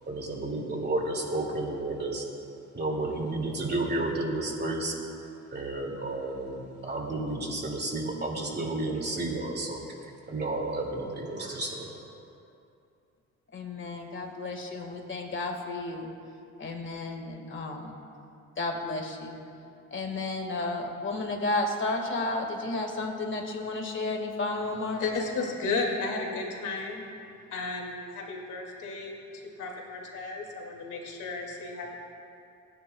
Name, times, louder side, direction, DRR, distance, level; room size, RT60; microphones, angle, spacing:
voice 1, 0.1-2.4 2.7-4.9 5.5-12.0, right 2 dB, 35° right, -1 dB, 2.5 m, -32 dB
voice 2, 13.5-16.1 16.6-18.0 18.6-19.4 19.9-25.0, left 2 dB, 40° left, 3 dB, 1.8 m, -32 dB
voice 3, 25.0-27.1 27.5-31.9, left 3 dB, 80° left, 0 dB, 2.4 m, -33 dB
27.5 x 9.8 x 2.3 m, 2.6 s
cardioid pair, 90°, 30 cm